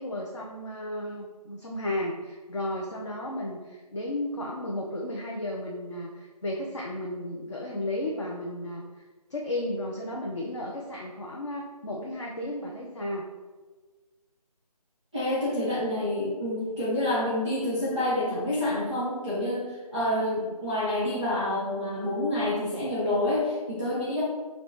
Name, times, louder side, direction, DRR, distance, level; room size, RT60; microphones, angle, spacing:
voice 1, 0.0-9.0 9.3-13.3, left 1 dB, 50° left, -2 dB, 0.6 m, -34 dB
voice 2, 15.1-24.2, left 1 dB, 10° left, -9 dB, 0.6 m, -28 dB
4.9 x 2.2 x 4.2 m, 1.3 s
figure-of-eight pair, 165°, 20 cm